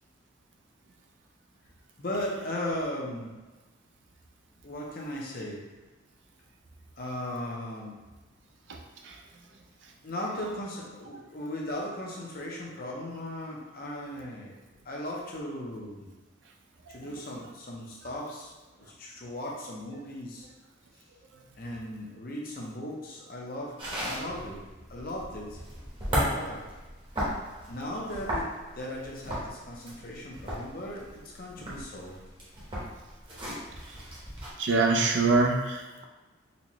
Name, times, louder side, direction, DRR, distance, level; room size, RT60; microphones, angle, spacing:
voice 1, 2.0-3.4 4.6-5.6 7.0-8.0 10.0-14.5 14.8-16.1 16.9-18.5 18.8-20.5 21.6-24.6 24.9-25.6 26.1-26.7 27.7-32.2, left 1 dB, 50° left, -2 dB, 0.6 m, -37 dB
sound 1, 23.8-34.5, equal, 25° right, 0.9 m, -35 dB
voice 2, 34.6-36.0, right 3 dB, 70° right, 2 dB, 0.4 m, -24 dB
4.1 x 2.2 x 3.0 m, 1.2 s
head